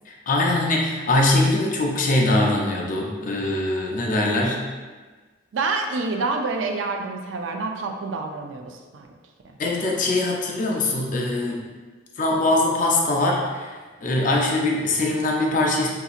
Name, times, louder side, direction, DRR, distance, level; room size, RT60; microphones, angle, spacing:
voice 1, 0.1-4.6 9.6-11.6 12.2-13.7 14.0-15.9, left 2 dB, 45° left, -1 dB, 0.4 m, -22 dB
voice 2, 5.5-9.1, right 3 dB, 80° right, 3 dB, 0.4 m, -27 dB
3.8 x 2.7 x 2.4 m, 1.4 s
head